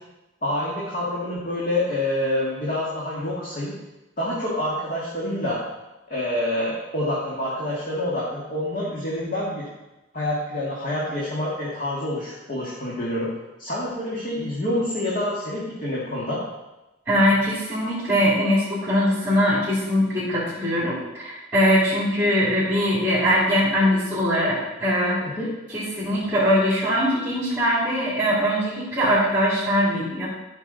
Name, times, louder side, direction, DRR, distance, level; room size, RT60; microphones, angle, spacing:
voice 1, 0.4-3.7 4.2-5.6 6.1-9.7 10.1-13.3 13.6-16.4 25.2-25.5, left 1 dB, 45° left, -6 dB, 1.9 m, -27 dB
voice 2, 17.1-25.3 25.7-30.3, equal, 10° right, -8 dB, 2.8 m, -21 dB
12.5 x 6.0 x 4.0 m, 1.0 s
head